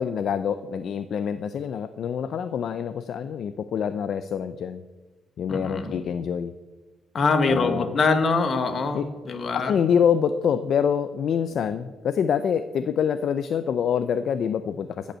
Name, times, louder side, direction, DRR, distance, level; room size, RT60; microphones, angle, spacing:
voice 1, 0.0-4.8 5.4-6.5 7.5-7.9 8.9-9.0 9.5-15.2, left 7 dB, 50° left, 11 dB, 0.4 m, -26 dB
voice 2, 5.5-6.0 7.1-9.8, left 4 dB, 30° left, 7 dB, 1.1 m, -24 dB
13.0 x 5.2 x 8.8 m, 1.3 s
cardioid pair, 175°, 0 cm